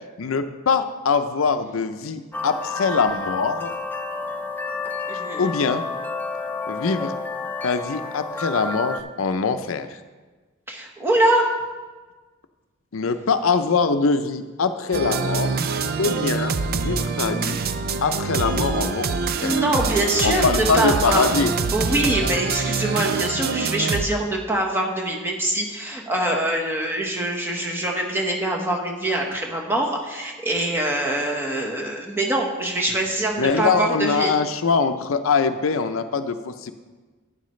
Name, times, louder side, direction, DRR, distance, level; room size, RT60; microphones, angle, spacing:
voice 1, 0.2-3.7 5.4-5.8 6.7-7.1 7.6-10.0 12.9-15.5 16.0-17.6 18.0-19.6 20.2-21.5 33.4-36.7, left 4 dB, 80° left, 9 dB, 0.6 m, -23 dB
sound 1, 2.3-9.0, left 3 dB, 10° left, 0.5 m, -30 dB
voice 2, 5.1-5.5 10.7-11.5 19.4-21.2 21.7-34.3, right 1 dB, 10° right, 0 dB, 1.2 m, -24 dB
sound 2, 14.9-24.1, right 4 dB, 50° right, 0.5 m, -25 dB
11.5 x 9.1 x 3.2 m, 1.3 s
head